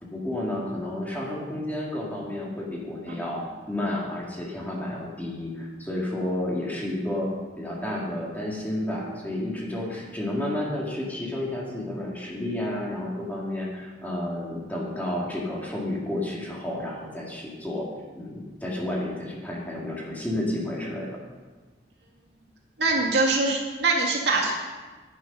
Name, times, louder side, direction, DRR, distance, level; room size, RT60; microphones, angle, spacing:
voice 1, 0.0-7.3 7.6-17.9 18.1-21.1, left 1 dB, 10° left, -4 dB, 2.3 m, -31 dB
voice 2, 22.8-24.5, right 3 dB, 80° right, -1 dB, 2.1 m, -23 dB
11.0 x 8.8 x 5.5 m, 1.3 s
head